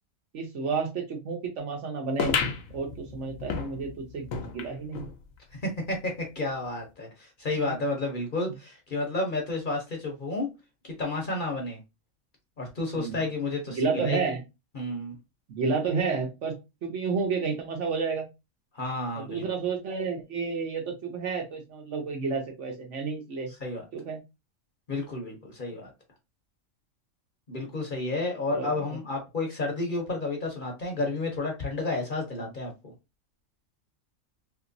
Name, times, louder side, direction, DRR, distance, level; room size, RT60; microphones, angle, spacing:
voice 1, 0.3-2.3 2.7-4.2 4.5-5.1 7.6-7.8 13.0-13.2 13.7-14.4 15.5-16.5 16.8-18.3 19.1-23.5 23.9-24.2 28.5-29.0 32.4-32.5, right 5 dB, 65° right, 1.1 m, -30 dB
sound 1, 2.2-5.1 5.6-5.7 5.9-6.0 6.8-6.9, left 5 dB, 80° left, 1.1 m, -32 dB
voice 2, 5.6-10.5 10.8-11.8 12.6-14.3 14.7-15.2 18.7-19.5 23.6-23.8 24.9-25.9 27.5-32.9, left 2 dB, 45° left, 0.8 m, -31 dB
2.9 x 2.9 x 2.5 m
omnidirectional pair, 1.4 m